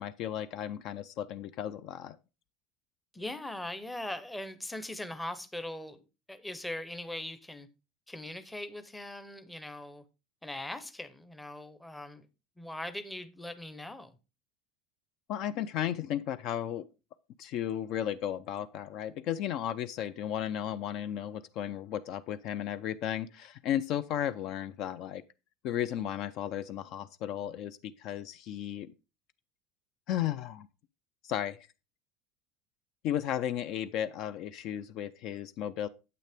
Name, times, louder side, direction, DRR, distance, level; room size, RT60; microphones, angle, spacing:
voice 1, 0.0-2.2 15.3-16.9 17.4-25.2 25.6-28.9 30.1-30.7 31.2-31.6 33.0-35.9, left 10 dB, 45° left, 0.4 m, -34 dB
voice 2, 3.1-6.0 6.3-7.7 8.1-10.0 10.4-12.3 12.6-14.1, left 1 dB, 5° left, 0.6 m, -40 dB
9.2 x 8.2 x 3.4 m
cardioid pair, 175°, 0 cm